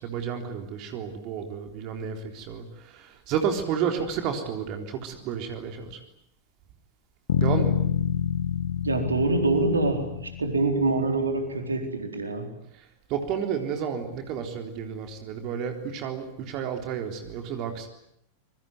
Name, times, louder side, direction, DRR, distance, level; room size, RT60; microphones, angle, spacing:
voice 1, 0.0-6.0 7.4-7.7 12.7-17.9, right 7 dB, 40° right, 5 dB, 3.7 m, -31 dB
sound 1, 7.3-11.4, left 9 dB, 60° left, 1.6 m, -28 dB
voice 2, 8.8-12.5, right 2 dB, 75° right, 5 dB, 4.1 m, -25 dB
26.5 x 23.0 x 9.5 m, 0.76 s
figure-of-eight pair, 90°, 0 cm